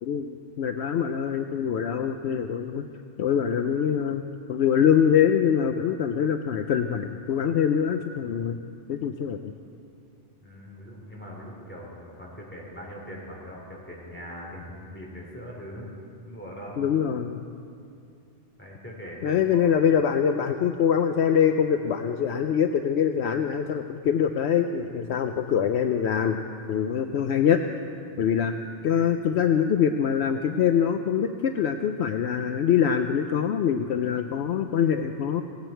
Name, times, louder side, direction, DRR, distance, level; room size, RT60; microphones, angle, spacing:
voice 1, 0.0-2.9 3.2-4.2 4.5-8.6 8.9-9.5 16.8-17.4 19.2-26.4 26.7-27.6 28.2-28.5 28.8-35.4, left 8 dB, 70° left, 7 dB, 0.8 m, -24 dB
voice 2, 10.4-15.9 16.2-16.8 18.6-19.6, equal, 10° left, -4 dB, 3.8 m, -41 dB
18.0 x 17.5 x 4.5 m, 2.4 s
omnidirectional pair, 1.2 m